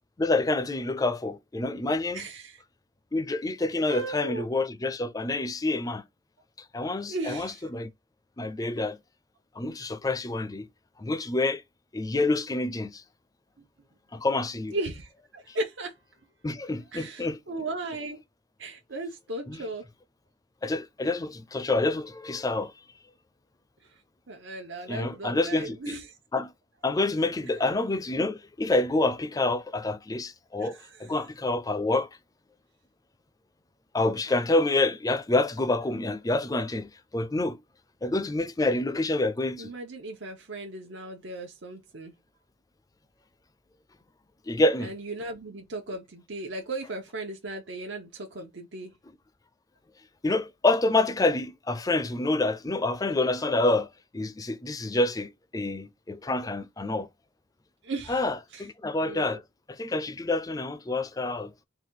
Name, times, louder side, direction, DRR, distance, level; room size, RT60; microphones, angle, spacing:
voice 1, 0.2-2.2 3.1-6.0 6.7-7.9 8.4-9.0 9.6-10.7 11.0-11.6 11.9-13.0 14.1-14.8 15.5-15.6 16.4-17.4 19.5-19.7 20.6-22.7 24.9-26.0 26.3-26.5 26.8-32.1 33.9-37.6 38.0-39.7 44.5-44.9 50.2-53.9 54.1-57.1 58.1-59.4 59.8-61.5, left 2 dB, 20° left, 0.4 m, -27 dB
voice 2, 2.1-2.6 3.9-4.5 7.1-7.6 14.7-15.9 16.9-18.2 18.6-19.8 23.9-24.0 24.3-26.1 30.6-31.0 39.6-42.1 44.8-48.9 57.8-58.2 58.5-58.6 59.0-59.4, right 2 dB, 75° right, 0.9 m, -36 dB
4.0 x 2.4 x 4.5 m
head